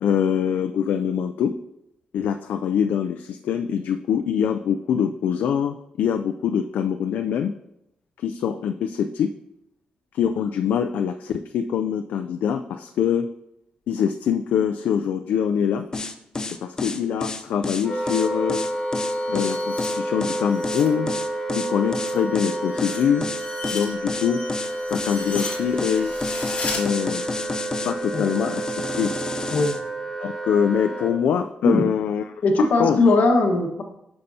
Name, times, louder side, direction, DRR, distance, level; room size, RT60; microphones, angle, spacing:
voice 1, 0.0-1.6 2.1-7.5 8.2-9.3 10.1-13.3 13.9-15.9 16.6-18.7 19.3-21.1 21.5-23.3 23.7-24.4 24.9-26.1 26.7-27.2 27.8-29.1 30.2-32.2 32.6-33.0, left 8 dB, 90° left, 6 dB, 0.4 m, -24 dB
sound 1, 15.9-29.8, left 3 dB, 25° left, 0.6 m, -30 dB
Wind instrument woodwind instrument, 17.8-31.2, right 1 dB, 10° left, 1.3 m, -29 dB
sound 2, 18.5-20.9 21.3-26.8, left 4 dB, 45° left, 1.9 m, -37 dB
voice 2, 32.4-33.8, left 2 dB, 70° left, 2 dB, 1.3 m, -19 dB
9.6 x 6.6 x 2.7 m, 0.83 s
cardioid pair, 125°, 3 cm